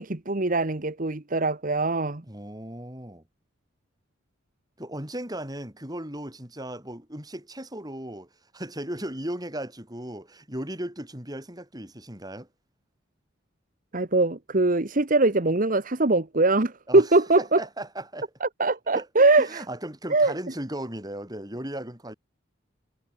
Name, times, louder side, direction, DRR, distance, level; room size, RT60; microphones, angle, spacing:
voice 1, 0.0-2.2 13.9-17.6 18.4-19.6 20.1-20.3, right 2 dB, 45° right, 1.3 m, -22 dB
voice 2, 2.3-3.2 4.8-12.5 16.9-17.0 17.4-18.3 18.9-19.1 19.4-22.1, right 1 dB, 20° right, 7.0 m, -36 dB
head